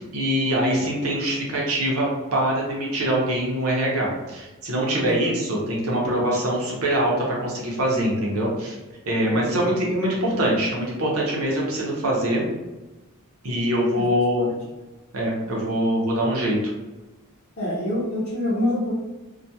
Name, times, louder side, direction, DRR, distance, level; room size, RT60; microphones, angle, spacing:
voice 1, 0.0-8.8 9.1-12.4 13.4-14.5 15.1-16.7, right 1 dB, 75° right, -3 dB, 0.8 m, -23 dB
voice 2, 5.0-5.3 9.3-9.6 13.9-14.0 17.6-18.9, left 1 dB, 40° left, -10 dB, 0.7 m, -26 dB
2.3 x 2.3 x 2.7 m, 1.1 s
head